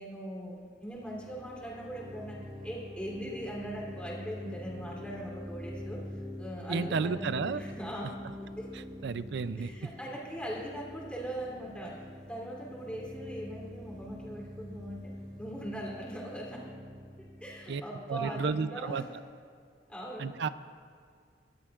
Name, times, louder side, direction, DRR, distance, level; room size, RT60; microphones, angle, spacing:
voice 1, 0.0-6.0 6.4-8.2 8.6-8.8 9.5-16.7 17.2-19.1 19.9-20.3, right 1 dB, 5° left, -4 dB, 3.1 m, -40 dB
sound 1, 0.9-18.5, left 1 dB, 30° right, 3.5 m, -45 dB
voice 2, 6.7-7.6 9.0-9.9 17.7-17.8 18.1-19.0 20.2-20.5, right 5 dB, 65° right, 14 dB, 0.5 m, -32 dB
23.5 x 12.5 x 2.4 m, 2.1 s
head